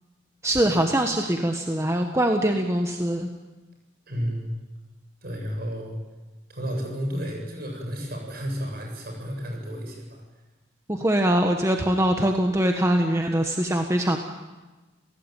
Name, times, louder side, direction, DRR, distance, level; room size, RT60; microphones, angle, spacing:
voice 1, 0.4-3.3 10.9-14.2, right 1 dB, 15° right, 4 dB, 1.4 m, -23 dB
voice 2, 4.1-4.5 5.2-6.0 6.5-10.2, equal, 50° right, 1 dB, 7.7 m, -32 dB
29.0 x 17.5 x 9.2 m, 1.2 s
head